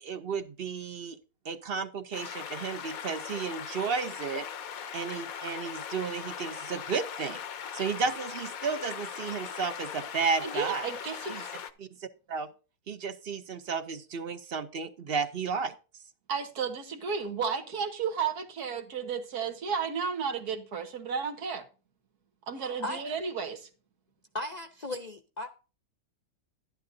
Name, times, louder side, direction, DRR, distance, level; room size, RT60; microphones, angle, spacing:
voice 1, 0.0-1.2 1.4-4.5 4.9-7.4 7.7-10.9 11.3-11.4 11.8-11.9 12.3-12.5 12.9-15.7, right 5 dB, 50° right, 0.7 m, -33 dB
sound 1, 2.1-11.7, left 8 dB, 70° left, 1.2 m, -39 dB
voice 2, 10.4-11.4 16.3-21.7 22.5-23.7, right 6 dB, 90° right, 1.8 m, -33 dB
voice 3, 22.6-23.0 24.3-25.5, left 1 dB, 40° left, 0.6 m, -36 dB
11.5 x 10.5 x 2.6 m
omnidirectional pair, 1.6 m